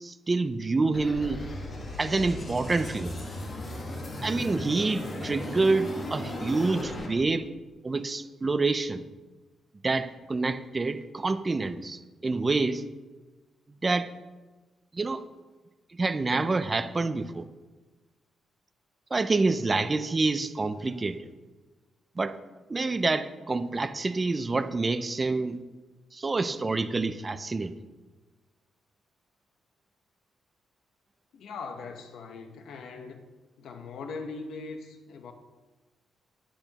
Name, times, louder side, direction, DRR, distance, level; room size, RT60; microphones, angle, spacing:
voice 1, 0.0-1.4 2.0-3.1 4.2-7.5 7.8-9.0 9.8-12.8 13.8-14.1 14.9-15.2 15.9-17.4 19.1-21.2 22.2-22.3 22.7-25.6 26.1-27.7, right 3 dB, 20° right, 11 dB, 0.4 m, -27 dB
sound 1, 0.9-7.1, left 1 dB, 30° left, 1.5 m, -36 dB
voice 2, 31.3-33.2 33.6-35.3, left 4 dB, 75° left, 6 dB, 0.9 m, -40 dB
9.9 x 8.7 x 2.9 m, 1.2 s
cardioid pair, 150°, 0 cm